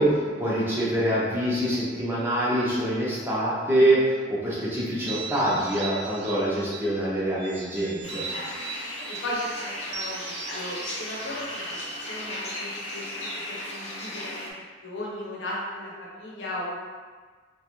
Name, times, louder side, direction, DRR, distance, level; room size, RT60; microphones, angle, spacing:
voice 1, 0.0-8.2, right 1 dB, 10° right, -8 dB, 0.7 m, -25 dB
sound 1, 4.9-7.0 7.4-9.3 9.9-12.4, right 5 dB, 60° right, 0.3 m, -39 dB
sound 2, 8.0-14.5, left 1 dB, 35° left, 0.6 m, -36 dB
voice 2, 9.2-11.8 12.1-14.5 14.8-16.8, left 1 dB, 85° left, -5 dB, 0.8 m, -36 dB
2.9 x 2.3 x 2.9 m, 1.5 s
head